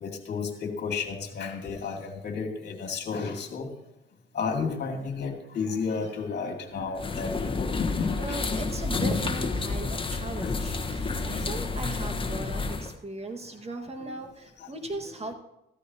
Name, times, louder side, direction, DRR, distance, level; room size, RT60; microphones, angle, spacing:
voice 1, 0.0-3.7 4.3-8.4 10.4-10.5 14.0-14.1 14.8-14.9, left 5 dB, 55° left, 3 dB, 2.3 m, -32 dB
sound 1, 7.0-12.9, left 3 dB, 25° left, 1.3 m, -30 dB
voice 2, 8.2-15.3, right 2 dB, 30° right, 4 dB, 1.8 m, -37 dB
14.5 x 13.5 x 2.9 m, 0.88 s
cardioid pair, 90°, 20 cm